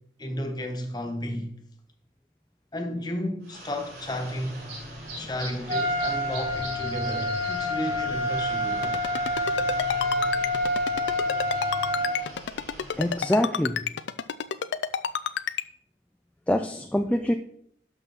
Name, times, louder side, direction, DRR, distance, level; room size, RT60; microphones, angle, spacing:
voice 1, 0.2-1.5 2.7-4.6 5.1-9.0, left 1 dB, 25° left, 1.2 m, -33 dB
sound 1, 3.4-13.3, right 1 dB, 80° right, 4.5 m, -40 dB
Trumpet, 5.7-12.2, left 1 dB, 50° right, 3.4 m, -27 dB
Ringtone, 8.8-15.6, left 7 dB, 90° left, 0.4 m, -29 dB
voice 2, 12.9-13.9 16.5-17.4, left 1 dB, 10° left, 0.3 m, -25 dB
12.0 x 6.0 x 4.0 m
head